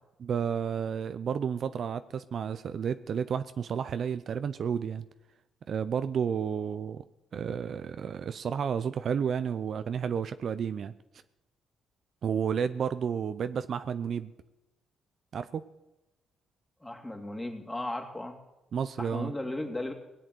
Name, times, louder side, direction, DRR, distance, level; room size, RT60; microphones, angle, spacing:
voice 1, 0.2-5.1 5.7-7.0 7.3-10.9 12.2-14.3 15.3-15.6 18.7-19.3, right 7 dB, 55° right, 12 dB, 0.6 m, -31 dB
voice 2, 16.8-18.4 19.0-19.9, left 1 dB, 10° left, 3 dB, 2.7 m, -36 dB
18.0 x 7.8 x 9.4 m, 0.98 s
cardioid pair, 90°, 0 cm